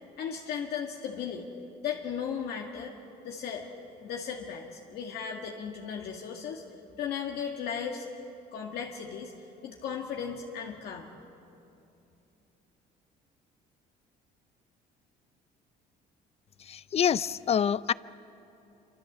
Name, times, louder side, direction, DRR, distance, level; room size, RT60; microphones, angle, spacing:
voice 1, 0.2-1.5 1.8-3.0 3.2-3.7 4.0-6.6 7.0-8.1 8.5-9.3 9.6-11.1, left 7 dB, 70° left, 0 dB, 1.9 m, -36 dB
voice 2, 16.6-17.9, left 8 dB, 35° left, 18 dB, 0.5 m, -26 dB
27.0 x 25.0 x 7.4 m, 2.8 s
cardioid pair, 110°, 17 cm